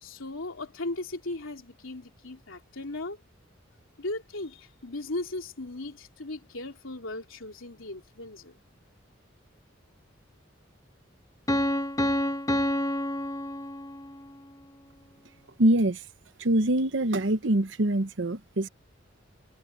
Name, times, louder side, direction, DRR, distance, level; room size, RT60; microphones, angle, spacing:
voice 1, 0.0-3.2 4.0-8.5, left 2 dB, 90° left, 3.0 m, -37 dB
Piano, 11.5-14.3, left 1 dB, 20° left, 1.3 m, -28 dB
voice 2, 15.6-16.0 16.4-18.7, right 1 dB, 65° right, 1.0 m, -24 dB
head